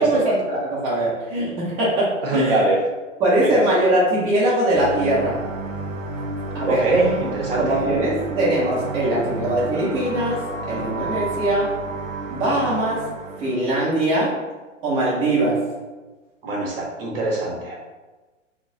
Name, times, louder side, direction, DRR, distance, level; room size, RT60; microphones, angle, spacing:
voice 1, 0.0-2.6 3.2-5.4 6.5-6.8 7.6-11.7 12.3-13.0 13.4-14.4 14.8-15.6, right 1 dB, 15° right, -8 dB, 0.6 m, -21 dB
voice 2, 2.2-2.8 3.4-3.7 6.6-7.8 16.4-17.9, right 2 dB, 45° right, -2 dB, 0.7 m, -23 dB
sound 1, 4.7-13.7, right 3 dB, 85° right, 0.5 m, -31 dB
2.2 x 2.1 x 3.7 m, 1.2 s
figure-of-eight pair, 115°, 38 cm